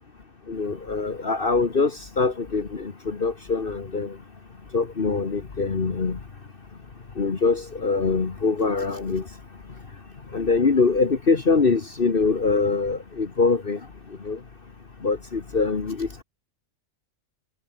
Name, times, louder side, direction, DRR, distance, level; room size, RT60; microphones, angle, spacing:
voice 1, 0.5-1.9 2.2-4.1 4.7-6.2 7.2-9.2 10.3-13.8 14.2-14.4 15.0-16.2, left 4 dB, 45° left, 1.6 m, -23 dB
omnidirectional pair, 1.4 m